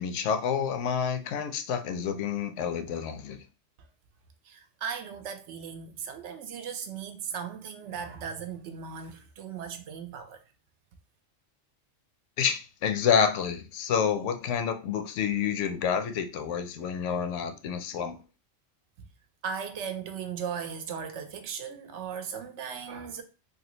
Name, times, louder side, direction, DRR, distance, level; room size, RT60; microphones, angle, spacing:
voice 1, 0.0-3.4 12.4-18.2, left 7 dB, 75° left, 0.9 m, -28 dB
voice 2, 4.5-10.4 19.4-23.2, right 7 dB, 75° right, 0.9 m, -37 dB
3.2 x 2.4 x 3.0 m
omnidirectional pair, 1.3 m